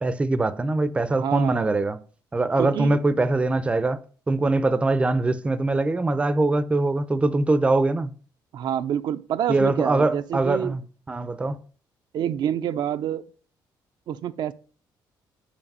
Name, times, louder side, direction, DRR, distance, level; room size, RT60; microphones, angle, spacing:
voice 1, 0.0-2.0 2.3-4.0 4.3-8.1 9.5-10.8 11.1-11.6, right 2 dB, 15° right, 0.5 m, -22 dB
voice 2, 1.1-1.7 2.6-3.0 8.5-10.8 12.1-13.2 14.1-14.5, right 10 dB, 65° right, 0.4 m, -27 dB
5.8 x 4.9 x 5.4 m
cardioid pair, 130°, 8 cm